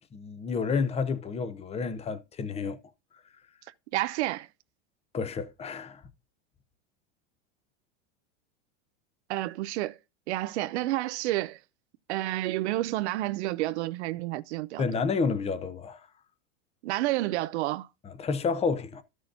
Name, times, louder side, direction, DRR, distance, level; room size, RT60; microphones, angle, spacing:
voice 1, 0.1-2.8 5.1-6.0 14.8-16.0 18.0-19.0, left 5 dB, 20° left, 0.8 m, -30 dB
voice 2, 3.9-4.5 9.3-10.0 10.3-11.6 12.1-14.8 16.8-17.9, right 16 dB, 80° right, 0.7 m, -30 dB
13.0 x 6.4 x 2.6 m
supercardioid pair, 135°, 34 cm